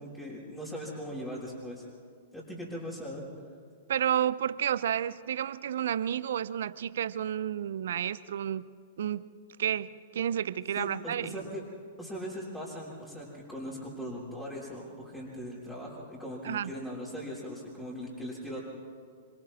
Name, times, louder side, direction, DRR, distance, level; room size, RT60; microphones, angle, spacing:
voice 1, 0.0-1.8 2.3-3.2 10.7-11.6 12.0-18.6, equal, 10° left, -8 dB, 6.4 m, -39 dB
voice 2, 3.9-8.7 9.0-9.2 9.6-11.4 16.4-16.7, right 10 dB, 65° right, 17 dB, 0.6 m, -31 dB
27.5 x 26.0 x 3.7 m, 2.2 s
hypercardioid pair, 110°, 0 cm